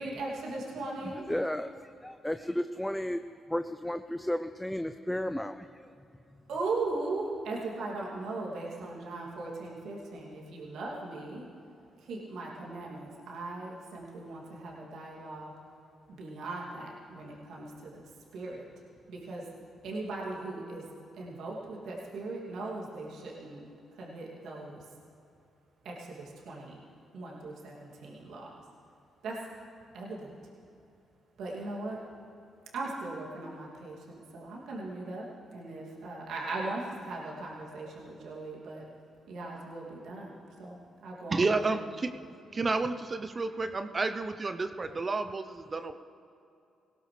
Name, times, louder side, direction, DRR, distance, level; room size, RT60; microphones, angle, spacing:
voice 1, 0.0-1.2 6.5-11.5 12.0-15.5 16.1-17.9 18.3-18.6 19.1-19.4 19.8-20.8 21.1-23.6 24.0-24.8 25.8-26.8 27.1-28.6 29.2-29.4 29.9-30.3 31.4-32.0 32.7-35.3 35.5-38.8 39.3-40.8 41.0-41.7, right 2 dB, 70° right, -4 dB, 2.8 m, -38 dB
voice 2, 1.0-3.2 3.5-5.9, left 1 dB, 10° left, 9 dB, 0.6 m, -33 dB
voice 3, 41.3-42.1 42.5-45.9, right 3 dB, 40° right, 8 dB, 0.8 m, -30 dB
20.0 x 17.0 x 3.4 m, 2.7 s
hypercardioid pair, 45°, 0 cm